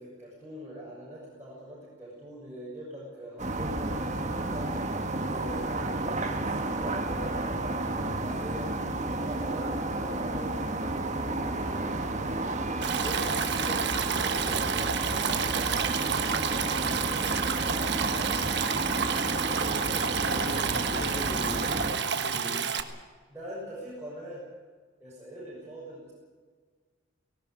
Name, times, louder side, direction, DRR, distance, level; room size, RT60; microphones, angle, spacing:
voice 1, 0.0-4.0 4.4-8.7 9.1-12.6 12.9-16.3 23.3-24.4 25.0-26.1, equal, 10° right, -8 dB, 6.7 m, -43 dB
sound 1, 3.4-21.9, right 2 dB, 35° right, 1.8 m, -31 dB
Stream, 12.8-22.8, right 7 dB, 60° right, 1.5 m, -30 dB
voice 2, 18.0-19.1 20.0-22.7, left 1 dB, 70° left, 3 dB, 5.7 m, -40 dB
19.0 x 18.0 x 9.1 m, 1.6 s
head